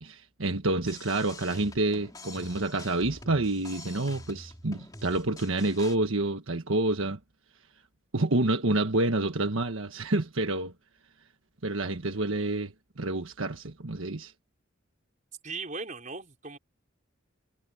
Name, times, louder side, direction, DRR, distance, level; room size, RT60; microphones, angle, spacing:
voice 1, 0.0-7.2 8.1-10.7 11.6-14.3, right 2 dB, 85° right, 1.5 m, -28 dB
sound 1, 0.8-6.0, left 2 dB, 20° left, 3.0 m, -46 dB
voice 2, 15.4-16.6, right 4 dB, 40° right, 4.8 m, -38 dB
head